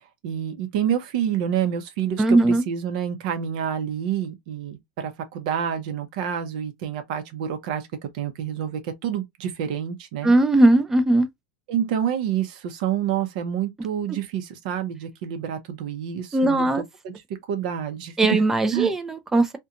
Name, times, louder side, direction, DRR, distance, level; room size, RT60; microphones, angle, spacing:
voice 1, 0.2-7.9 8.1-10.3 11.7-16.7 17.0-17.1 17.5-18.4 18.7-18.9, right 9 dB, 60° right, 0.6 m, -28 dB
voice 2, 2.2-2.6 10.2-11.3 16.3-16.8 18.2-19.6, right 2 dB, 10° right, 0.3 m, -19 dB
2.5 x 2.2 x 2.7 m
supercardioid pair, 170°, 5 cm